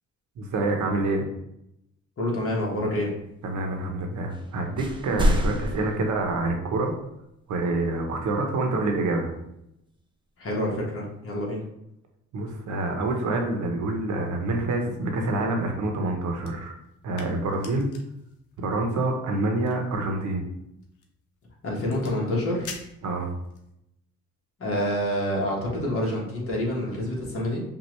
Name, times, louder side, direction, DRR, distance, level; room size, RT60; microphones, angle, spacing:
voice 1, 0.4-1.2 3.4-6.9 7.5-9.3 12.3-16.8 17.0-17.9 18.6-20.4 23.0-23.3, right 2 dB, 75° right, 3 dB, 1.0 m, -27 dB
voice 2, 2.2-3.1 10.4-11.6 21.6-22.9 24.6-27.6, left 1 dB, 45° left, -3 dB, 1.7 m, -27 dB
sound 1, 4.3-4.5 4.8-6.8, equal, 15° right, 0.7 m, -27 dB
sound 2, 16.4-23.7, left 5 dB, 75° left, 0.9 m, -48 dB
5.4 x 2.6 x 3.2 m, 0.81 s
cardioid pair, 90°, 30 cm